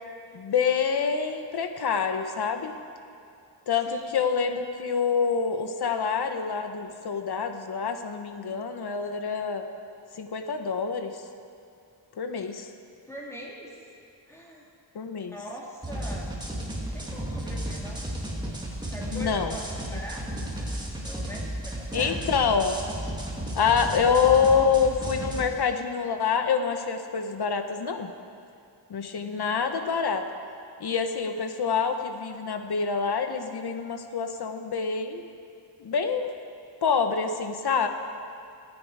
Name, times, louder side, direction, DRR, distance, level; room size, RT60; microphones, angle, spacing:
voice 1, 0.3-2.7 3.7-9.6 10.2-11.1 12.2-12.7 14.9-15.4 19.1-19.5 21.9-22.8 23.5-28.1 28.9-30.2 30.8-35.2 35.8-36.3 36.8-37.9, left 6 dB, 60° left, 6 dB, 1.2 m, -26 dB
voice 2, 13.1-13.7 14.3-14.7 15.3-16.3 16.8-18.0 18.9-19.6 19.9-20.4 21.0-22.2 29.1-29.5, equal, 5° left, -3 dB, 2.6 m, -42 dB
sound 1, 15.8-25.4, right 1 dB, 10° right, 2.2 m, -34 dB
28.0 x 9.5 x 4.9 m, 2.5 s
wide cardioid pair, 155°, 43 cm